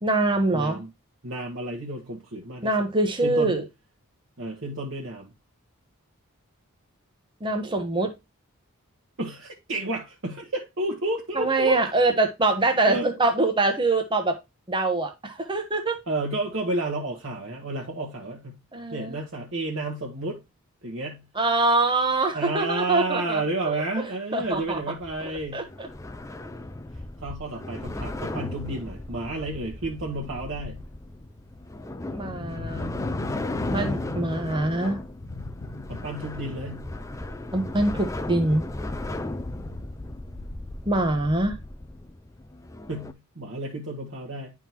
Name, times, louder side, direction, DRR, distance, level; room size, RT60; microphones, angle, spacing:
voice 1, 0.0-0.8 2.6-3.6 7.4-8.1 11.4-14.4 14.7-16.0 18.7-19.2 21.3-23.7 24.3-24.8 25.2-25.9 32.1-33.1 33.7-35.0 37.5-38.7 40.8-41.6, right 2 dB, 20° right, 1.0 m, -24 dB
voice 2, 0.5-0.9 1.2-2.7 3.2-3.6 4.4-5.3 9.2-11.8 12.9-13.1 16.1-18.6 18.9-20.4 20.8-21.2 22.3-25.6 27.2-30.8 35.9-36.9 42.9-44.5, right 2 dB, 60° right, 1.3 m, -31 dB
sound 1, 24.4-43.1, left 1 dB, 15° left, 0.4 m, -36 dB
sound 2, 28.6-28.9 29.4-38.2 38.5-41.4, left 2 dB, 75° left, 0.8 m, -39 dB
11.0 x 3.7 x 3.0 m
head